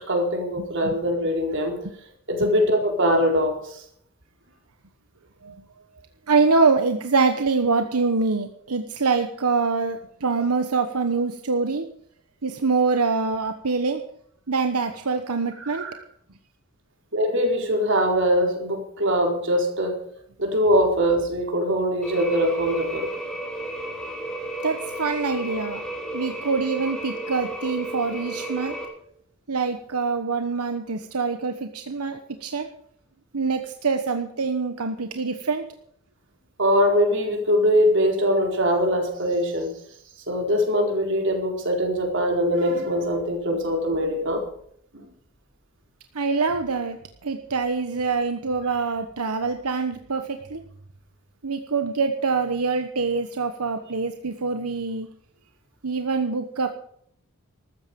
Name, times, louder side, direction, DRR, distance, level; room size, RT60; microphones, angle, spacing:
voice 1, 0.1-1.8 2.3-3.8 15.6-15.9 17.1-20.0 20.4-23.1 36.6-39.7 40.3-44.4, equal, 55° right, 2 dB, 4.3 m, -22 dB
voice 2, 6.3-11.8 12.4-14.0 14.5-15.9 24.6-25.8 26.1-28.7 29.5-32.7 33.3-35.6 46.1-47.0 47.2-50.6 51.4-55.1 55.8-56.7, right 4 dB, 85° right, 7 dB, 1.1 m, -25 dB
sound 1, 22.0-28.8, right 1 dB, 5° left, 4.4 m, -33 dB
14.5 x 13.5 x 5.3 m, 0.67 s
head